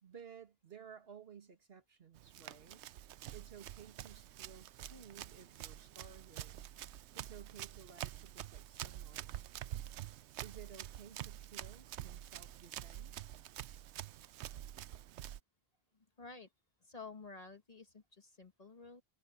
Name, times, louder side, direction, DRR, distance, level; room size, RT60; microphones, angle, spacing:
voice 1, 0.0-2.8 3.3-6.7 7.1-9.4 10.4-13.3, right 7 dB, 60° right, 1.8 m, -56 dB
Run, 2.2-15.4, right 12 dB, 85° right, 0.9 m, -47 dB
sound 1, 4.8-10.3, left 2 dB, 60° left, 3.7 m, -76 dB
voice 2, 15.9-16.5 16.8-19.0, left 4 dB, 35° left, 1.5 m, -52 dB
omnidirectional pair, 1.1 m